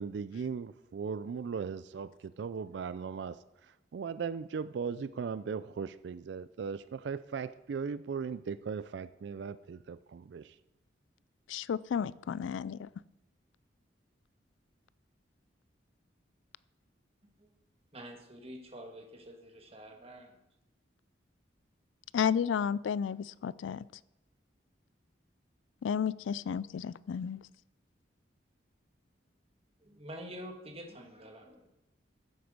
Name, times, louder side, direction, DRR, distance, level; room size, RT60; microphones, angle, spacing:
voice 1, 0.0-10.6, right 6 dB, 65° right, 15 dB, 0.3 m, -38 dB
voice 2, 11.5-12.9 22.1-23.8 25.8-27.4, left 7 dB, 85° left, 20 dB, 0.3 m, -32 dB
voice 3, 17.9-20.4 29.8-31.7, equal, 30° right, 3 dB, 1.5 m, -47 dB
13.0 x 7.9 x 5.2 m, 0.93 s
head